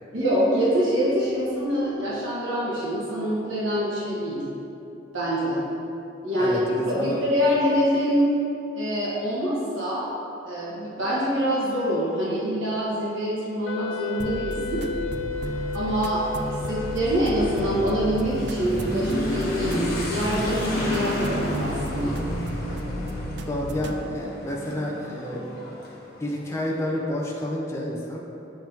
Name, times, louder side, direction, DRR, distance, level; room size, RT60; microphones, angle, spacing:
voice 1, 0.1-4.5 5.1-5.6 6.2-8.3 8.7-10.0 10.4-14.9 15.7-22.2, equal, 80° right, -8 dB, 1.5 m, -25 dB
voice 2, 6.4-7.2 23.5-25.4 26.2-28.2, left 1 dB, 15° left, -3 dB, 0.7 m, -29 dB
Wind instrument woodwind instrument, 13.7-18.8, left 4 dB, 75° left, 0.3 m, -34 dB
sound 1, 14.2-24.0, equal, 55° right, 0.4 m, -34 dB
Motorcycle / Accelerating revving vroom, 14.6-27.0, equal, 50° left, 1.2 m, -32 dB
7.4 x 5.4 x 2.9 m, 3.0 s
head